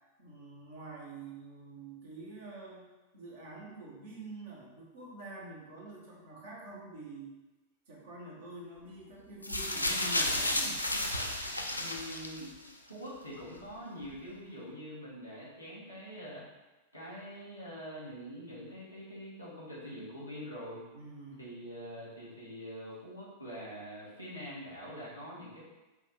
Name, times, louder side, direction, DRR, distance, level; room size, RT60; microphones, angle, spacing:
voice 1, 0.2-2.9 3.1-7.3 7.9-10.8 20.9-21.4, right 2 dB, 60° right, -4 dB, 1.1 m, -46 dB
sound 1, 9.4-12.7 13.6-13.7, left 1 dB, 85° left, 0.4 m, -32 dB
voice 2, 11.7-12.5 12.8-16.4 16.9-20.8 21.4-25.6, equal, 90° right, -8 dB, 1.3 m, -44 dB
5.3 x 2.5 x 3.3 m, 1.1 s
figure-of-eight pair, 90°, 0 cm